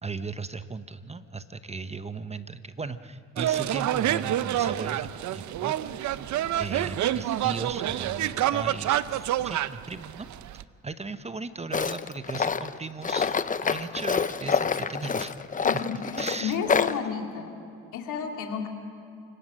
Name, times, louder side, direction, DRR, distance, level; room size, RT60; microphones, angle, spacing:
voice 1, 0.0-5.8 6.6-10.3 10.8-15.5 16.2-16.6, right 4 dB, 20° right, 12 dB, 0.8 m, -37 dB
sound 1, 3.4-10.6, right 12 dB, 70° right, 0.7 m, -28 dB
Tools, 11.7-17.0, left 5 dB, 25° left, 0.7 m, -27 dB
voice 2, 15.6-17.5 17.9-18.7, left 7 dB, 85° left, 3 dB, 2.7 m, -32 dB
28.5 x 18.0 x 6.4 m, 2.7 s
cardioid pair, 90°, 30 cm